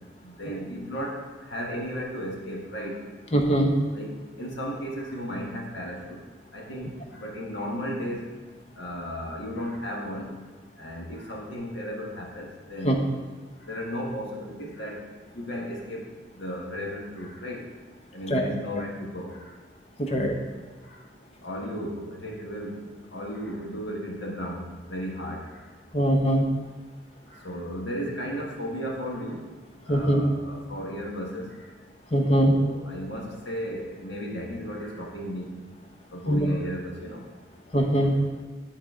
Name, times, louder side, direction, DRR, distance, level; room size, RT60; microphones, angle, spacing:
voice 1, 0.2-3.0 3.9-4.1 4.4-6.2 6.5-8.3 8.8-10.3 10.8-13.0 13.6-15.0 15.3-17.6 18.1-19.5 20.1-20.3 20.8-21.1 21.4-22.8 23.1-25.7 27.3-29.4 29.9-31.7 32.2-35.6 36.1-37.3, equal, 90° left, -1 dB, 1.4 m, -35 dB
voice 2, 3.3-3.7 12.8-13.0 18.3-18.5 20.0-20.3 25.9-26.5 29.9-30.2 32.1-32.5 36.3-36.5 37.7-38.1, equal, 35° left, 3 dB, 0.7 m, -22 dB
10.5 x 4.1 x 3.7 m, 1.3 s
head